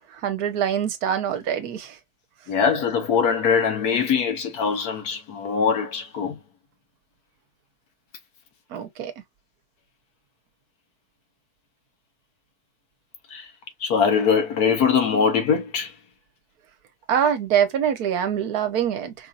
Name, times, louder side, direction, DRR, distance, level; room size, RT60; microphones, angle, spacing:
voice 1, 0.2-1.9 8.7-9.1 17.1-19.1, right 8 dB, 70° right, 1.3 m, -24 dB
voice 2, 2.5-6.4 13.3-13.5 13.8-15.9, left 6 dB, 70° left, 1.4 m, -22 dB
4.5 x 2.6 x 2.4 m
omnidirectional pair, 1.7 m